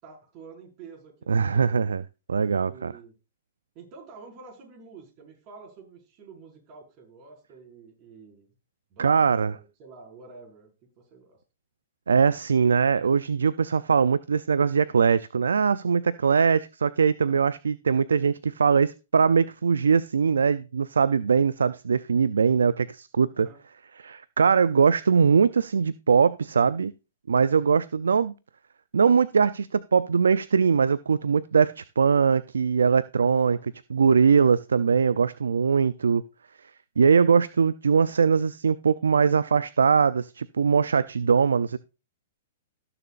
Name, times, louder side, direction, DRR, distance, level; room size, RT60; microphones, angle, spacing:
voice 1, 0.0-1.8 2.6-3.1 3.8-8.5 8.9-10.7 11.1-11.4 17.2-17.4 23.3-23.6 27.6-27.8 33.3-33.7, right 4 dB, 40° right, 0 dB, 5.2 m, -48 dB
voice 2, 1.3-2.0 2.3-2.9 9.0-9.6 12.1-23.5 24.0-26.9 27.3-28.3 28.9-36.2 37.0-41.8, right 6 dB, 90° right, 17 dB, 0.4 m, -21 dB
18.5 x 7.0 x 2.5 m, 0.30 s
hypercardioid pair, 130°, 0 cm